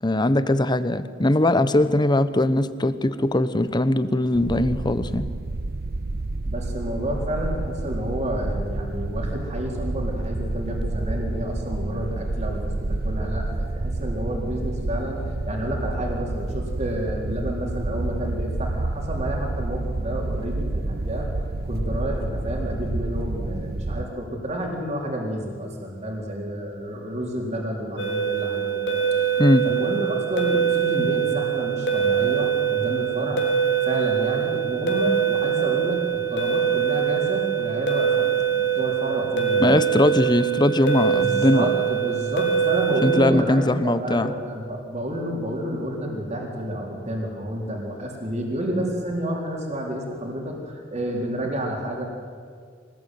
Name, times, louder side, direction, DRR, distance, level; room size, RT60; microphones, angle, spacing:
voice 1, 0.0-5.3 29.4-29.7 39.6-41.7 43.0-44.3, left 1 dB, 25° left, 13 dB, 1.0 m, -20 dB
sound 1, 4.3-24.0, right 2 dB, 55° right, 0.8 m, -29 dB
voice 2, 6.5-21.3 21.6-29.0 29.3-33.4 33.8-39.8 41.2-52.0, equal, 40° right, 0 dB, 4.2 m, -30 dB
sound 2, 28.0-43.2, right 8 dB, 75° left, 3.2 m, -23 dB
24.5 x 20.0 x 9.4 m, 2.1 s
head